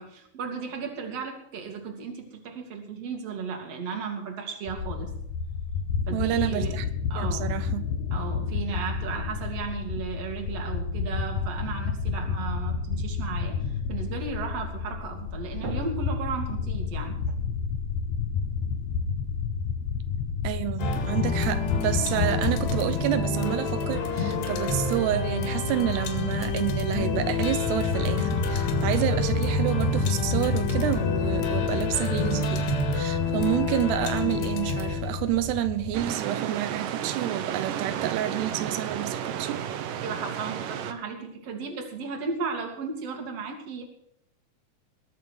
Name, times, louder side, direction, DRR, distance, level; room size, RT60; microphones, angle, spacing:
voice 1, 0.0-5.1 6.1-6.8 7.1-7.5 8.1-17.2 40.0-43.8, right 5 dB, 45° right, 3.1 m, -35 dB
sound 1, 4.7-22.8, left 5 dB, 70° left, 2.1 m, -30 dB
voice 2, 6.1-6.9 7.2-7.9 20.4-39.6, right 13 dB, 85° right, 2.9 m, -29 dB
sound 2, 20.8-36.1, left 3 dB, 90° left, 4.1 m, -27 dB
sound 3, 35.9-40.9, right 9 dB, 70° right, 2.3 m, -32 dB
20.5 x 7.5 x 6.3 m
omnidirectional pair, 4.6 m